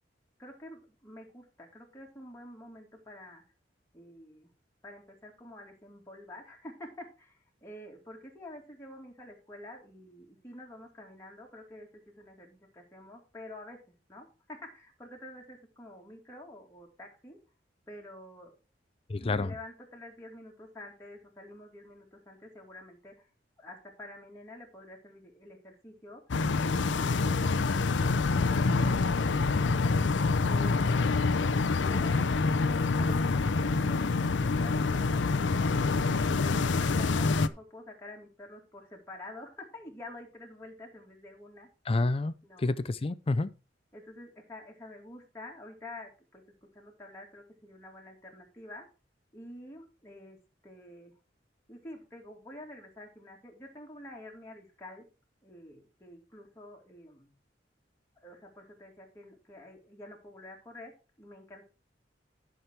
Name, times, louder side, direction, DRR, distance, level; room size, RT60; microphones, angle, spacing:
voice 1, 0.4-3.4 3.9-4.5 4.8-11.9 12.2-13.8 14.1-17.4 17.9-18.5 19.2-23.3 23.6-26.2 30.4-31.0 31.9-34.8 35.1-41.7 42.4-42.8 43.9-46.4 46.7-48.9 49.3-50.4 50.6-51.1 51.7-55.1 55.4-57.3 58.2-61.6, left 1 dB, 15° left, 2.4 m, -48 dB
voice 2, 19.1-19.5 41.9-43.5, left 2 dB, 30° left, 0.5 m, -29 dB
sound 1, 26.3-37.5, left 4 dB, 90° left, 0.6 m, -26 dB
11.5 x 6.2 x 4.6 m
head